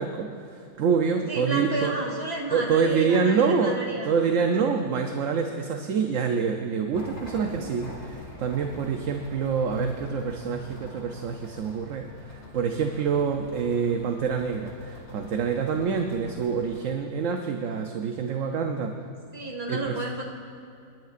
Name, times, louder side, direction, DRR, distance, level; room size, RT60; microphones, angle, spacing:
voice 1, 0.0-1.9 2.5-18.9 19.7-20.0, right 6 dB, 65° right, 4 dB, 1.0 m, -26 dB
voice 2, 1.3-4.1 7.3-7.7 19.3-20.2, right 2 dB, 40° right, 0 dB, 2.1 m, -31 dB
sound 1, 6.9-16.9, left 1 dB, 45° left, 2.5 m, -45 dB
27.5 x 11.0 x 2.5 m, 2.6 s
omnidirectional pair, 1.6 m